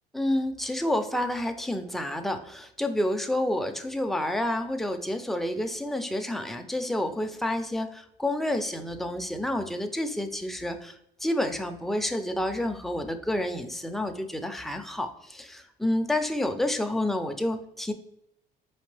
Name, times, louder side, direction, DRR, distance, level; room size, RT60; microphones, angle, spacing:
voice 1, 0.1-17.9, left 1 dB, ahead, 5 dB, 0.4 m, -29 dB
4.3 x 3.3 x 3.2 m, 0.77 s
cardioid pair, 110°, 17 cm